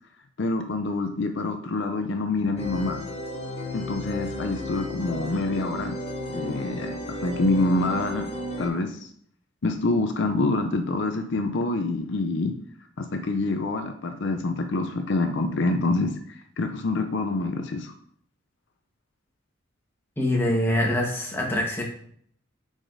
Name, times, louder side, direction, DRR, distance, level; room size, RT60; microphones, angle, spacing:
voice 1, 0.4-3.0 3.7-6.0 6.3-8.3 8.6-9.1 9.6-12.5 13.0-17.9, left 2 dB, 65° left, 6 dB, 0.5 m, -26 dB
sound 1, 2.6-8.7, left 1 dB, 30° left, 1.0 m, -34 dB
voice 2, 20.2-21.8, left 1 dB, 10° left, -1 dB, 1.2 m, -24 dB
7.3 x 4.9 x 2.6 m, 0.63 s
head